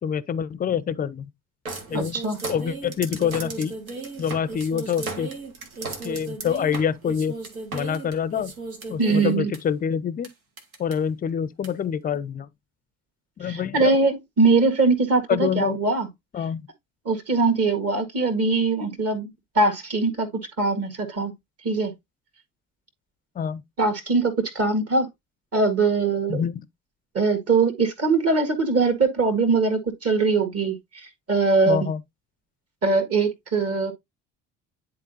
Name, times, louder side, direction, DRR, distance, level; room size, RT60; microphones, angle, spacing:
voice 1, 0.0-1.3 1.9-2.1 2.5-3.7 4.2-5.3 6.0-7.4 7.7-8.5 8.9-10.3 10.8-12.5 13.4-13.9 15.3-15.8 16.3-16.7 23.4-23.6 26.3-26.7 31.7-32.0, left 8 dB, 20° left, 0.5 m, -26 dB
sound 1, 1.7-9.6 10.2-10.3 10.6-10.9 11.6-11.7, right 3 dB, 85° right, 1.4 m, -35 dB
voice 2, 1.9-2.4 9.0-9.5 13.4-16.1 17.0-20.3 20.6-21.3 21.6-21.9 23.8-25.1 25.5-26.4 27.1-31.9 32.8-33.9, right 3 dB, 35° right, 1.7 m, -22 dB
10.5 x 4.0 x 2.6 m
figure-of-eight pair, 55°, 41 cm